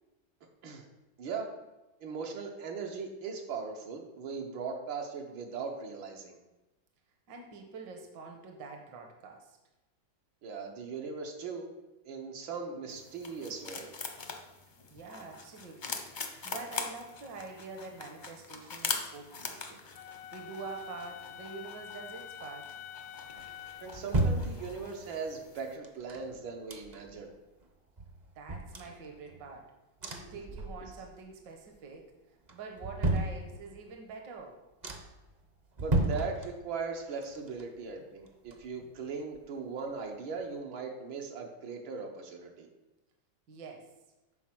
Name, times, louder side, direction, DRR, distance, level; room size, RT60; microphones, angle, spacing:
voice 1, 1.2-1.5 2.0-6.4 10.4-11.7 12.1-13.9 23.8-27.3 35.8-42.7, right 5 dB, 85° right, 1 dB, 1.9 m, -39 dB
voice 2, 7.3-9.6 14.9-16.0 16.4-19.8 20.3-22.7 28.4-29.7 30.1-32.1 32.5-34.6 43.5-43.9, right 4 dB, 70° right, 3 dB, 1.7 m, -45 dB
sound 1, 12.9-25.8, left 4 dB, 55° left, 0.5 m, -43 dB
Wind instrument woodwind instrument, 19.9-24.0, left 10 dB, 85° left, 1.3 m, -47 dB
sound 2, 23.4-25.1 25.8-27.3 27.6-27.7 28.0-29.6 30.0-31.2 31.5-32.0 32.5-33.9 34.4-34.5 34.8-35.3 35.7-36.9 37.2-39.0 39.3-39.4, right 2 dB, 45° right, 0.5 m, -34 dB
9.1 x 4.5 x 6.0 m, 1.0 s
omnidirectional pair, 2.1 m